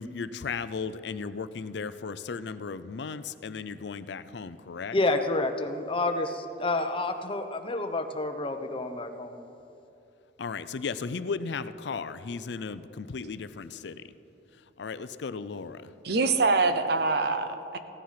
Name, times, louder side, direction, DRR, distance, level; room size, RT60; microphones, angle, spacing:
voice 1, 0.0-5.0 10.4-14.0 14.8-15.9, left 5 dB, 65° left, 14 dB, 0.5 m, -35 dB
voice 2, 4.9-9.4, left 2 dB, 30° left, 7 dB, 0.8 m, -29 dB
voice 3, 16.0-17.8, right 3 dB, 60° right, 9 dB, 0.8 m, -24 dB
15.5 x 10.5 x 5.8 m, 2.9 s
head